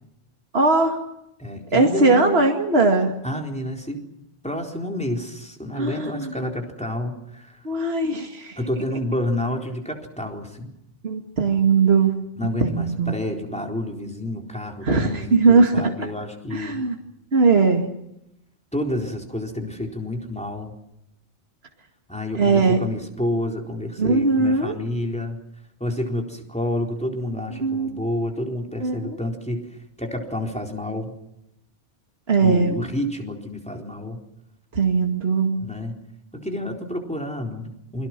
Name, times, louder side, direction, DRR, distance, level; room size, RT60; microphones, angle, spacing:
voice 1, 0.5-1.0 1.7-3.1 5.8-6.3 7.6-8.6 11.0-12.2 12.6-13.1 14.8-15.9 16.5-17.0 17.3-17.8 22.3-22.8 24.0-24.8 27.6-28.1 28.8-29.2 32.3-32.7 34.7-35.6, right 4 dB, 65° right, 3 dB, 2.4 m, -19 dB
voice 2, 1.4-2.4 3.2-4.0 4.4-7.7 8.6-10.7 12.4-16.8 18.7-20.7 22.1-25.4 25.8-29.7 30.0-31.1 32.4-34.2 35.6-36.0 36.3-38.1, left 1 dB, 5° left, 2 dB, 4.1 m, -29 dB
28.5 x 23.5 x 6.1 m, 0.82 s
omnidirectional pair, 1.1 m